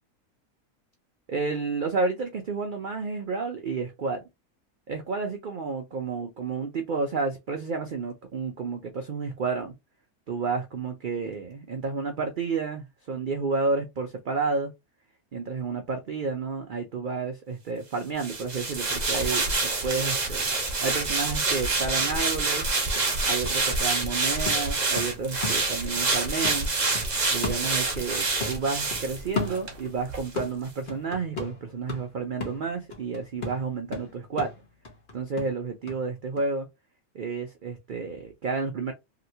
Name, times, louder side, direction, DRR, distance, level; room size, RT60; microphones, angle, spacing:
voice 1, 1.3-4.2 4.9-9.7 10.3-14.7 15.3-20.5 20.8-22.7 23.3-26.7 27.3-34.5 35.1-36.7 37.1-38.9, right 4 dB, 70° right, 0.4 m, -31 dB
sound 1, 18.2-29.8 30.1-30.3, right 3 dB, 35° right, 0.8 m, -27 dB
sound 2, 23.0-26.1 26.4-28.1 28.4-30.0 30.4-36.0 36.4-36.5, left 4 dB, 50° left, 1.1 m, -36 dB
2.9 x 2.9 x 2.7 m
omnidirectional pair, 1.5 m